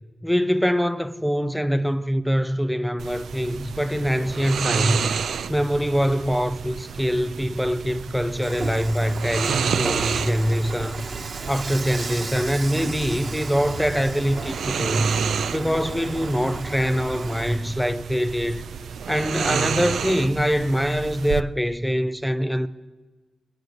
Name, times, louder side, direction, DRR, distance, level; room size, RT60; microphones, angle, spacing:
voice 1, 0.2-5.1 5.5-11.1 11.5-15.1 15.5-18.6 19.1-22.7, equal, ahead, 0.5 m, -24 dB
sound 1, 3.0-21.4, right 6 dB, 75° right, 0.4 m, -30 dB
Dishes pots and pans / Frying (food), 8.4-17.6, right 3 dB, 45° right, 1.0 m, -34 dB
20.0 x 8.0 x 8.0 m
wide cardioid pair, 115°, 0 cm